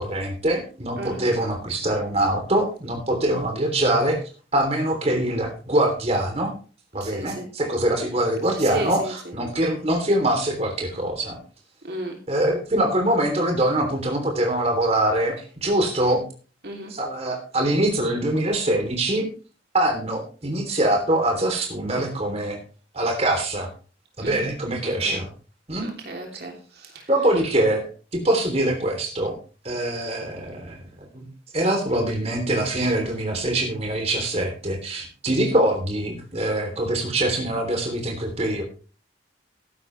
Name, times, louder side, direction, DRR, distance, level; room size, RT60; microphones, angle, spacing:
voice 1, 0.0-4.2 4.5-6.5 6.9-11.4 12.3-16.2 16.9-19.3 19.7-22.6 22.9-23.7 24.2-25.3 25.7-25.9 27.1-29.4 29.6-30.9 31.1-31.3 31.5-38.6, right 1 dB, 35° right, 3 dB, 3.3 m, -23 dB
voice 2, 1.0-1.3 7.0-7.5 8.5-9.3 11.8-12.2 16.6-16.9 24.2-24.4 24.8-25.2 25.8-27.4, right 1 dB, 60° right, 1 dB, 3.2 m, -34 dB
14.0 x 11.0 x 3.4 m, 0.37 s
head